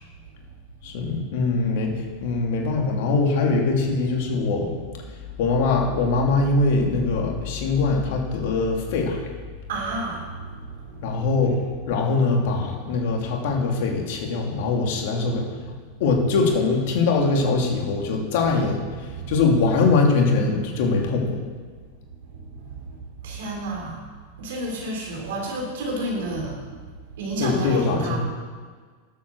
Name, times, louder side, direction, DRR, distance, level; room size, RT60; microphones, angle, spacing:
voice 1, 0.8-4.8 5.4-9.3 11.0-11.6 11.9-15.7 16.0-21.4 27.4-28.2, left 3 dB, 65° left, 1 dB, 2.7 m, -22 dB
voice 2, 9.7-11.2 19.0-19.4 22.3-24.0 24.4-26.8 27.2-28.2, right 2 dB, 70° right, 0 dB, 3.9 m, -31 dB
12.0 x 8.2 x 6.4 m, 1.5 s
hypercardioid pair, 110°, 0 cm